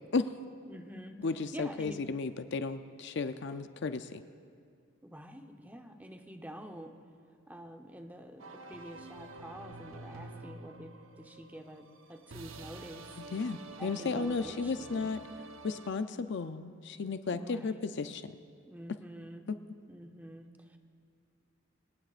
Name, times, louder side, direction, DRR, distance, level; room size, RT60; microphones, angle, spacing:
voice 1, 0.7-1.2 1.5-2.0 5.0-6.9 7.5-13.1 13.8-15.1 17.3-17.7 18.7-19.4 19.9-20.8, right 1 dB, 10° right, 4 dB, 0.8 m, -47 dB
voice 2, 1.2-4.2 13.2-15.2 15.6-18.4 19.5-19.6, left 4 dB, 55° left, 10 dB, 0.5 m, -34 dB
Orchestal music game, 8.4-15.9, right 3 dB, 75° right, 0.9 m, -48 dB
25.5 x 18.0 x 2.5 m, 2.2 s
head